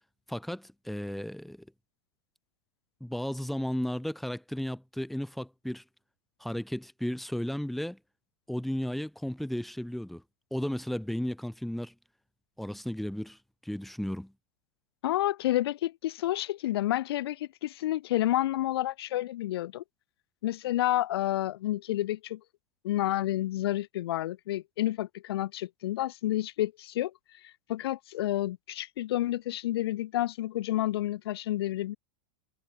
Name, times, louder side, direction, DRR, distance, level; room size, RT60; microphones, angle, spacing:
voice 1, 0.3-1.6 3.0-5.8 6.4-8.0 8.5-10.2 10.5-11.9 12.6-14.3, equal, ahead, 4.6 m, -34 dB
voice 2, 15.0-19.8 20.4-22.4 22.8-27.1 27.7-32.0, left 14 dB, 75° left, 5.5 m, -30 dB
supercardioid pair, 160°, 13 cm